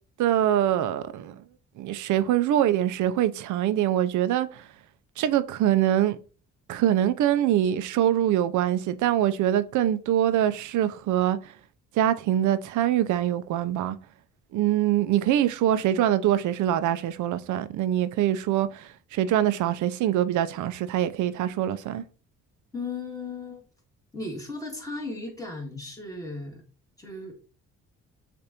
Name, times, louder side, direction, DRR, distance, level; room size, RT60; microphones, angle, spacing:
voice 1, 0.2-1.4 1.8-4.7 5.2-6.2 6.7-11.5 12.0-14.0 14.5-22.0, right 11 dB, 75° right, 0.5 m, -24 dB
voice 2, 22.7-23.6 24.1-26.6 27.0-27.3, left 3 dB, 10° left, 1.7 m, -36 dB
6.7 x 2.5 x 2.9 m
cardioid pair, 90°, 30 cm